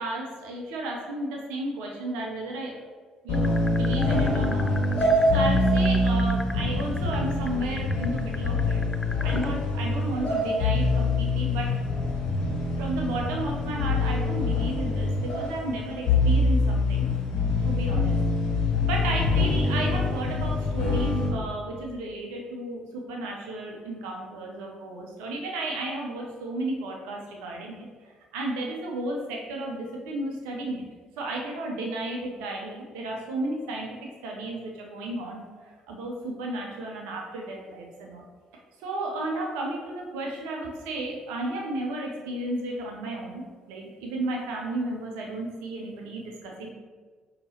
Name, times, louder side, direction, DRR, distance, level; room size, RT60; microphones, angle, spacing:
voice 1, 0.0-2.8 3.2-4.7 5.3-8.8 9.2-12.0 12.8-17.0 17.6-18.2 18.9-30.8 31.2-38.2 38.8-46.7, right 2 dB, 75° right, 0 dB, 0.5 m, -33 dB
sound 1, 3.3-21.3, left 2 dB, 65° left, 1.4 m, -25 dB
sound 2, 3.3-9.5, left 2 dB, 15° left, 0.3 m, -37 dB
5.3 x 2.8 x 2.8 m, 1.5 s
hypercardioid pair, 50°, 2 cm